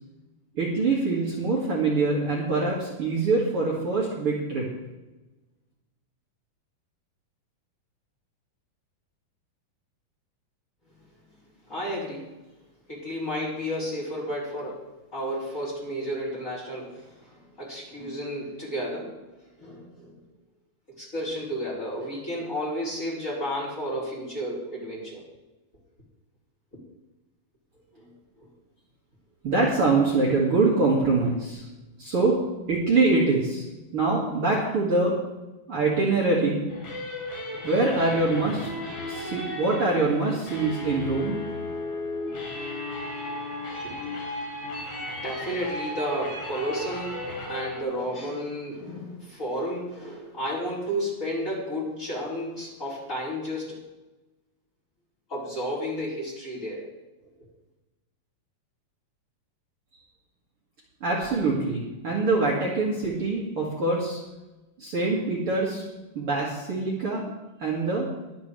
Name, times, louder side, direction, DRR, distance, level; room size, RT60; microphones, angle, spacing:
voice 1, 0.5-4.7 29.4-31.6 32.0-32.4 32.7-33.6 33.9-35.2 35.7-36.6 37.6-38.7 39.1-41.4 61.0-64.2 64.8-65.8 66.1-67.2 67.6-68.1, right 3 dB, 45° right, -5 dB, 2.7 m, -24 dB
voice 2, 11.7-12.3 12.9-19.2 19.6-20.2 20.9-25.2 27.9-28.1 28.4-28.5 43.8-43.9 45.2-53.8 55.3-56.9, equal, 25° left, -6 dB, 4.5 m, -32 dB
sound 1, 36.7-47.8, left 1 dB, 60° left, 5.3 m, -35 dB
22.0 x 8.4 x 3.4 m, 1.1 s
omnidirectional pair, 3.8 m